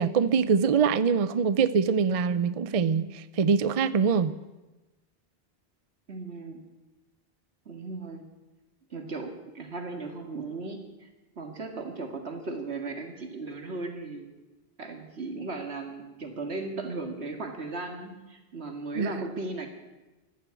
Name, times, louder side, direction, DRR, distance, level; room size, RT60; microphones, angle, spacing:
voice 1, 0.0-4.4 19.0-19.1, right 6 dB, 45° right, 0.5 m, -24 dB
voice 2, 6.1-6.6 7.7-8.2 8.9-11.1 11.4-14.3 14.8-19.7, right 3 dB, 80° right, 2.3 m, -36 dB
14.5 x 11.0 x 8.3 m
omnidirectional pair, 1.1 m